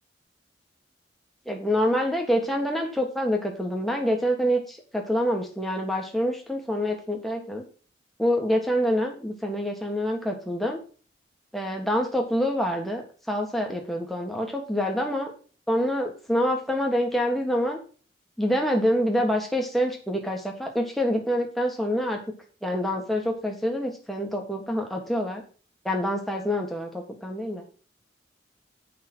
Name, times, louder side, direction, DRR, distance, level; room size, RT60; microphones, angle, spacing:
voice 1, 1.4-7.6 8.2-10.8 11.5-15.3 15.7-17.8 18.4-22.2 22.6-25.4 25.8-27.6, equal, ahead, 1 dB, 1.7 m, -26 dB
8.6 x 5.6 x 6.2 m, 0.38 s
head